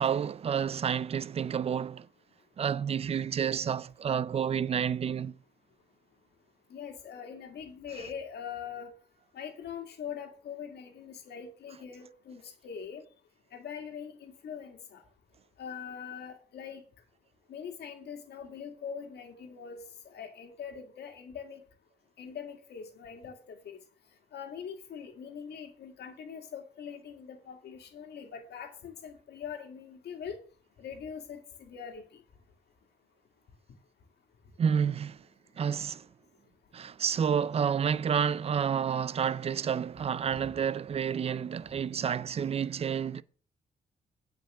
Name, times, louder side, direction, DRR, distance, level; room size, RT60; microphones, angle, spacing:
voice 1, 0.0-2.1 2.6-5.4 34.6-35.2 35.6-36.1 36.7-43.2, right 7 dB, 35° right, 0.4 m, -29 dB
voice 2, 6.7-8.9 9.3-13.0 13.5-15.0 15.6-16.8 17.5-21.6 22.2-23.8 24.3-30.4 30.8-32.0 40.3-40.4, left 7 dB, 80° left, 1.9 m, -42 dB
9.0 x 5.2 x 6.1 m
cardioid pair, 120°, 17 cm